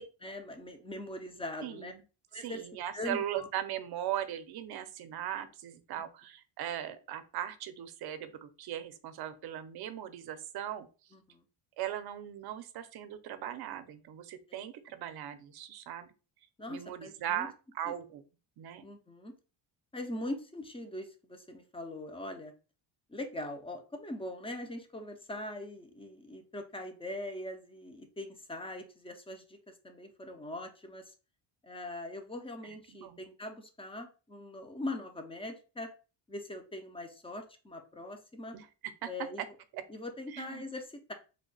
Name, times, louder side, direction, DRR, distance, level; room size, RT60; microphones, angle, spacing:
voice 1, 0.0-1.9 2.3-2.6 2.9-3.5 11.1-11.4 14.5-14.6 16.6-17.5 17.9-18.0 18.8-19.3 19.9-22.5 23.1-31.1 31.6-35.9 36.3-38.6 39.0-39.4 39.9-41.1, left 1 dB, 15° left, 6 dB, 0.4 m, -42 dB
voice 2, 1.6-2.0 2.3-10.9 11.8-16.1 16.7-18.2 18.6-18.9 32.6-33.2 38.5-38.7 39.0-39.1 39.7-39.8 40.3-40.6, right 11 dB, 60° right, 11 dB, 0.6 m, -39 dB
3.4 x 2.1 x 3.8 m, 0.34 s
cardioid pair, 145°, 44 cm